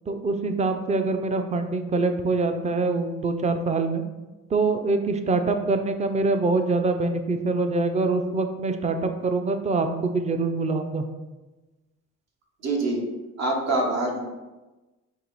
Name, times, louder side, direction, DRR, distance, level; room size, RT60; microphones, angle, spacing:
voice 1, 0.1-4.0 4.5-11.1, right 3 dB, 25° right, 7 dB, 0.4 m, -24 dB
voice 2, 12.6-13.0 13.4-14.2, right 2 dB, 60° right, 0 dB, 1.2 m, -24 dB
4.6 x 2.9 x 4.0 m, 1.1 s
cardioid pair, 90°, 30 cm